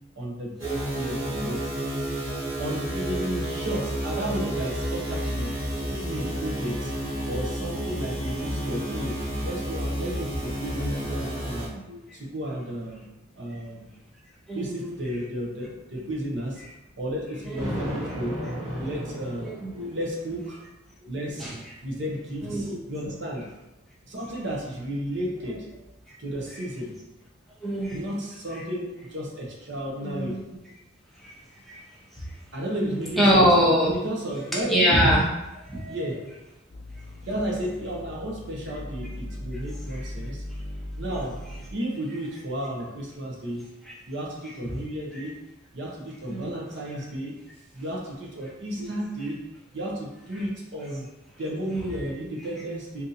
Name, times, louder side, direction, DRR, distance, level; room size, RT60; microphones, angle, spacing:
voice 1, 0.2-1.7 2.6-5.6 5.9-6.9 7.3-11.8 12.1-13.1 13.3-13.9 14.5-16.6 17.0-18.4 18.8-19.5 19.9-20.6 21.0-21.5 21.8-23.5 24.0-25.7 26.2-26.9 27.9-30.4 32.5-33.5 33.9-34.8 35.9-36.3 37.2-40.4 40.9-41.4 41.7-43.7 44.1-45.4 45.7-47.4 47.7-49.4 49.7-51.1 51.4-53.0, right 1 dB, 65° right, -2 dB, 0.7 m, -33 dB
sound 1, 0.6-11.7, equal, 90° right, 1.0 m, -30 dB
voice 2, 14.5-14.9 17.5-17.8 19.4-19.9 21.4-21.5 22.4-22.8 27.6-28.0 30.0-30.4 31.2-31.3 31.7-31.8 32.8-33.9 34.7-35.2 35.6-36.0 41.1-41.2 45.1-45.2 46.3-46.5 51.7-52.1, equal, ahead, -6 dB, 0.7 m, -24 dB
Thunder, 17.6-20.1, equal, 30° right, 1.4 m, -34 dB
sound 2, 36.7-41.7, left 1 dB, 50° left, 0.5 m, -38 dB
3.9 x 2.7 x 2.6 m, 0.97 s
head